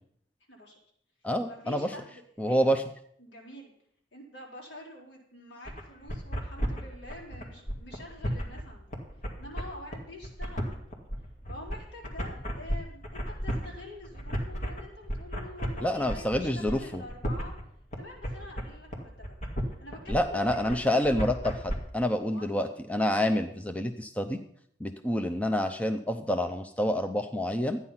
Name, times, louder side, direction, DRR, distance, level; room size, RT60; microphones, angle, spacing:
voice 1, 0.5-0.8 1.4-2.7 3.2-3.7 4.1-8.9 9.4-10.9 11.5-17.5 18.0-21.1 22.2-22.5, left 1 dB, 70° left, -3 dB, 4.1 m, -46 dB
voice 2, 1.2-1.9 2.4-2.8 15.8-17.0 20.1-24.4 24.8-27.8, equal, 5° left, 6 dB, 0.5 m, -28 dB
sound 1, 5.6-21.8, equal, 40° left, 2.1 m, -34 dB
12.5 x 9.6 x 5.7 m, 0.67 s
head